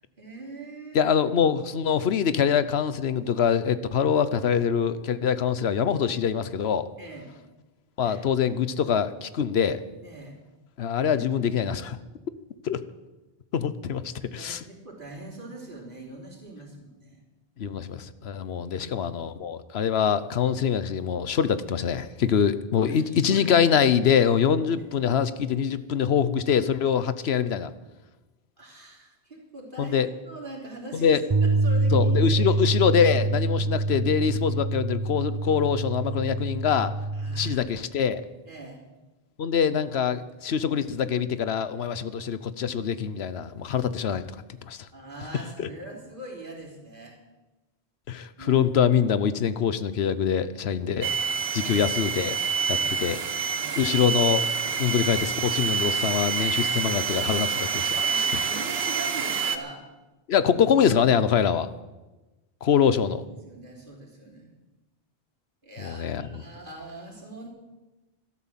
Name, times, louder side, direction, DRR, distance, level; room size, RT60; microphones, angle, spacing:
voice 1, 0.2-1.1 7.0-7.3 8.0-8.2 8.7-8.8 10.0-10.4 11.1-11.5 14.2-17.2 18.5-19.0 23.0-23.6 24.8-24.9 28.6-32.6 37.1-37.6 38.5-38.8 44.9-47.2 48.4-48.7 51.6-51.9 52.7-53.0 53.6-53.9 58.0-59.9 62.7-62.8 63.2-64.5 65.6-67.5, right 2 dB, 55° right, -1 dB, 3.5 m, -42 dB
voice 2, 0.9-6.9 8.0-9.8 10.8-12.0 12.6-12.8 13.5-14.6 17.6-27.7 29.8-30.1 30.9-31.2 31.9-36.9 37.4-38.2 39.4-44.9 45.6-45.7 48.1-51.1 51.5-52.4 52.7-53.2 53.8-54.4 54.7-58.4 60.3-61.7 62.6-63.2 65.8-66.4, left 7 dB, 85° left, 14 dB, 1.1 m, -24 dB
Bass guitar, 31.3-37.6, right 2 dB, 30° right, 0.5 m, -25 dB
sound 1, 51.0-59.6, right 6 dB, 80° right, 1.3 m, -27 dB
13.0 x 12.5 x 7.4 m, 1.1 s
omnidirectional pair, 1.0 m